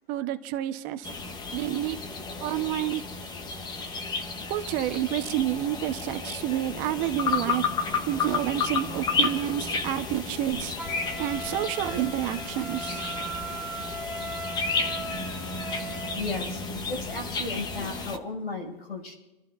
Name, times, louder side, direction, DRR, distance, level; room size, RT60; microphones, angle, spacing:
voice 1, 0.1-1.1 1.5-2.0 2.4-3.0 4.5-7.6 8.1-10.7 11.2-13.2, right 13 dB, 30° right, 8 dB, 0.9 m, -29 dB
sound 1, 1.0-18.2, left 4 dB, 15° left, 0.9 m, -32 dB
Wind instrument woodwind instrument, 10.8-16.2, right 3 dB, ahead, 0.5 m, -38 dB
voice 2, 16.2-19.1, left 3 dB, 75° left, 2 dB, 5.8 m, -35 dB
29.0 x 14.0 x 2.5 m, 1.0 s
hypercardioid pair, 135°, 30 cm